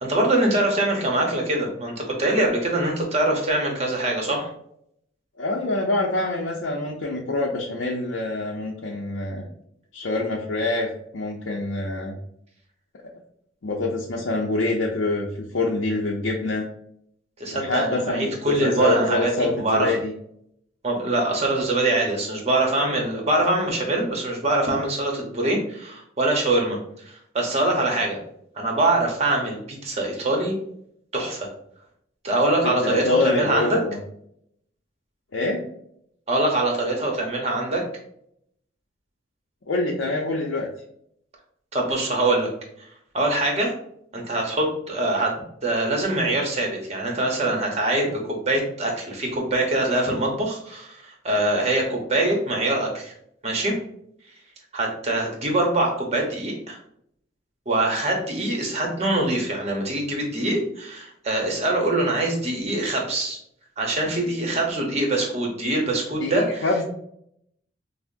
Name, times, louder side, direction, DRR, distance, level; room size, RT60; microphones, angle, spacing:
voice 1, 0.0-4.5 17.4-19.9 20.8-26.8 27.1-28.2 28.6-30.6 31.1-31.5 32.2-33.7 36.3-37.8 41.7-42.5 43.1-43.7 44.1-45.3 45.6-53.1 53.4-53.8 54.7-56.8 57.7-63.4 63.8-66.6, right 2 dB, 35° right, 1 dB, 0.9 m, -23 dB
voice 2, 5.4-9.4 9.9-12.2 13.6-15.3 15.5-16.7 17.5-20.1 32.6-34.0 35.3-35.6 39.7-40.7 66.2-66.8, left 2 dB, 75° left, -2 dB, 0.6 m, -25 dB
5.6 x 2.0 x 2.6 m, 0.71 s
head